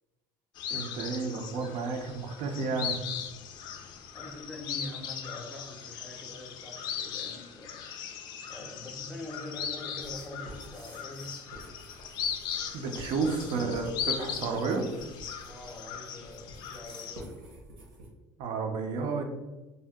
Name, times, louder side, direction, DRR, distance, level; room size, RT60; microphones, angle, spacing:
sound 1, 0.6-17.2, left 8 dB, 60° left, 0.4 m, -38 dB
voice 1, 0.7-3.0 12.7-14.9 18.4-19.2, right 4 dB, 65° right, 4 dB, 0.5 m, -31 dB
voice 2, 4.1-7.8 8.5-11.3 13.1-13.2 15.4-17.6, left 1 dB, ahead, 0 dB, 0.6 m, -44 dB
sound 2, 10.0-18.1, right 1 dB, 85° right, 1.0 m, -49 dB
2.7 x 2.1 x 3.4 m, 1.1 s
cardioid pair, 120°, 8 cm